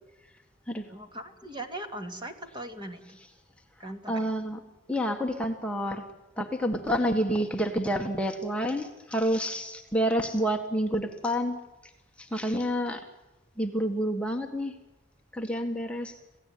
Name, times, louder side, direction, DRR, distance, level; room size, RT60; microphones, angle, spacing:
voice 1, 0.9-3.2 3.8-4.3, right 1 dB, 25° right, 6 dB, 2.4 m, -40 dB
voice 2, 4.1-4.6 4.9-6.0 6.4-11.9 12.2-13.0 13.6-14.7 15.3-16.2, equal, 5° left, 2 dB, 1.6 m, -29 dB
27.5 x 16.5 x 9.4 m, 1.1 s
head